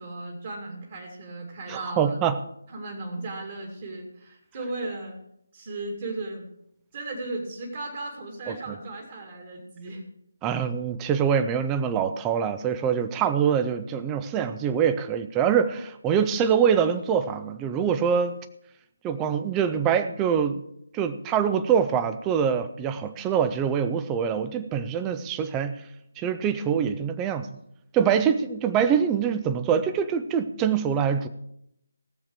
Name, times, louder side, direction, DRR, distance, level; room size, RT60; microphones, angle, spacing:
voice 1, 0.0-2.2 2.7-5.2 5.5-6.5 6.9-10.0, right 2 dB, 35° right, 0 dB, 2.4 m, -36 dB
voice 2, 1.7-2.4 8.5-8.8 10.4-18.4 19.0-20.6 20.9-25.7 26.2-27.5 27.9-31.3, right 7 dB, 15° right, 10 dB, 0.6 m, -24 dB
17.5 x 7.4 x 4.8 m, 0.76 s
figure-of-eight pair, 150°, 0 cm